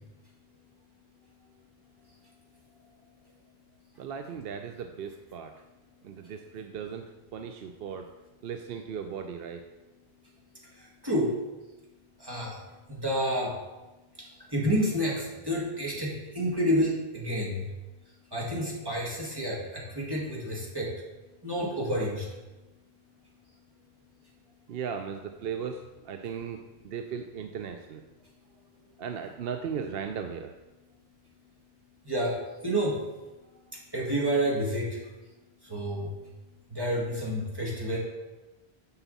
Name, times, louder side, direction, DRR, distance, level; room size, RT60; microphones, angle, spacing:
voice 1, 4.0-5.5 6.0-7.0 7.3-8.1 8.4-9.6 24.7-26.6 26.8-28.0 29.0-30.5, right 7 dB, 70° right, 6 dB, 0.8 m, -37 dB
voice 2, 10.7-11.4 12.2-12.6 12.9-13.6 14.2-17.7 18.3-20.9 21.4-22.3 32.1-33.0 33.7-35.0 35.6-36.1 36.7-38.0, equal, 20° right, -5 dB, 1.9 m, -29 dB
9.5 x 5.8 x 4.1 m, 1.1 s
omnidirectional pair, 1.1 m